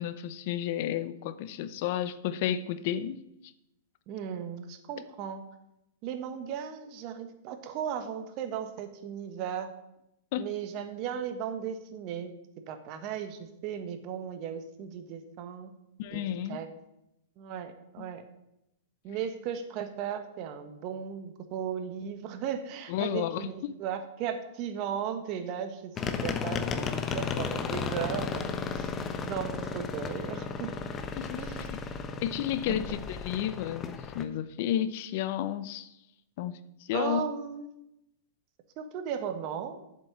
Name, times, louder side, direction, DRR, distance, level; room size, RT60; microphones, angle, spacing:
voice 1, 0.0-3.2 10.3-10.5 16.0-16.6 18.0-18.1 22.9-23.8 31.1-31.8 32.2-35.9 36.4-37.2, left 11 dB, 55° left, 14 dB, 0.7 m, -32 dB
voice 2, 4.1-5.4 6.0-9.7 10.4-12.3 12.7-15.7 16.1-16.7 17.4-18.2 19.0-28.9 29.2-30.7 31.4-31.7 32.7-32.8 36.9-37.7 38.8-39.8, right 8 dB, 45° right, 8 dB, 1.4 m, -36 dB
sound 1, 26.0-34.2, left 5 dB, 25° left, 1.0 m, -34 dB
7.5 x 7.4 x 8.1 m, 0.86 s
hypercardioid pair, 130°, 0 cm